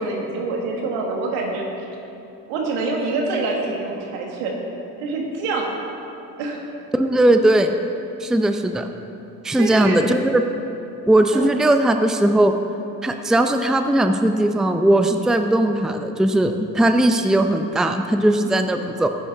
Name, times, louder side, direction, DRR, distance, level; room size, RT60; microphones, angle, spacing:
voice 1, 0.0-1.7 2.5-4.6 5.0-5.7 6.4-6.6 9.6-10.0 11.3-11.5, right 3 dB, 70° right, 0 dB, 1.9 m, -25 dB
voice 2, 6.9-7.7 8.2-8.9 9.4-10.4 11.1-12.5 13.0-19.1, right 1 dB, ahead, 7 dB, 0.6 m, -18 dB
16.5 x 9.6 x 3.6 m, 2.9 s
hypercardioid pair, 50°, 48 cm